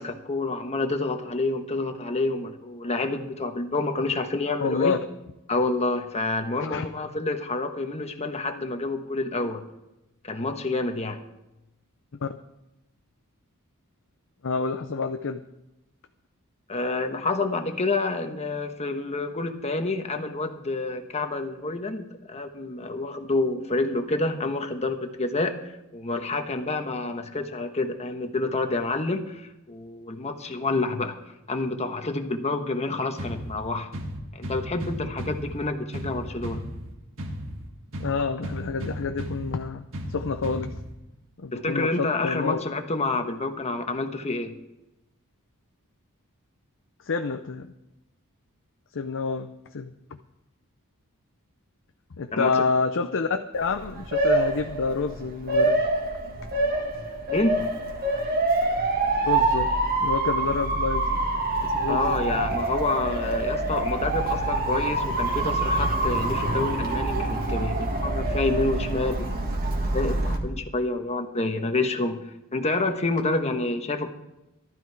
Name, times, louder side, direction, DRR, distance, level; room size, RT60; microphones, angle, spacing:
voice 1, 0.0-5.0 5.5-9.6 10.2-11.2 16.7-31.2 31.5-33.9 34.3-36.7 41.5-44.6 52.3-52.5 57.3-57.6 61.9-72.2 72.5-74.1, left 2 dB, 30° left, 6 dB, 1.2 m, -28 dB
voice 2, 4.6-5.0 6.6-6.9 12.2-12.4 14.4-15.4 38.0-40.7 41.4-42.6 47.0-47.7 48.9-49.9 52.2-55.8 59.2-59.7 60.0-61.2 61.6-62.5 73.4-73.5, left 4 dB, 60° left, 7 dB, 0.6 m, -28 dB
sound 1, 33.2-41.2, equal, 65° right, 1.5 m, -36 dB
Motor vehicle (road) / Siren, 53.6-70.4, right 2 dB, 45° right, 1.8 m, -26 dB
14.5 x 12.5 x 4.7 m, 0.93 s
head